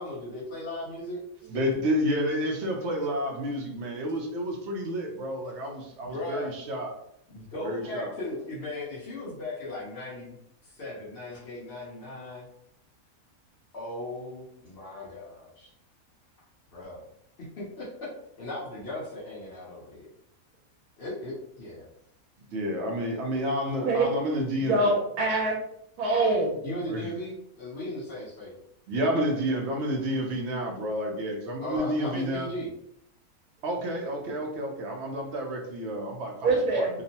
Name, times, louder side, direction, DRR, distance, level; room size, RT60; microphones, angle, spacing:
voice 1, 0.0-1.7 6.0-6.5 7.3-12.5 13.7-15.7 16.7-17.0 17.6-18.1 18.4-20.1 21.0-21.9 26.6-28.5 31.6-32.7, left 1 dB, 50° left, -8 dB, 0.9 m, -37 dB
voice 2, 1.5-6.9 7.6-8.1 22.5-24.8 26.9-27.1 28.9-32.5 33.6-37.0, equal, 65° right, 1 dB, 0.7 m, -30 dB
voice 3, 24.6-25.6 26.0-26.6 36.4-36.9, right 2 dB, 80° right, -1 dB, 1.1 m, -24 dB
2.9 x 2.0 x 2.7 m, 0.77 s
omnidirectional pair, 1.5 m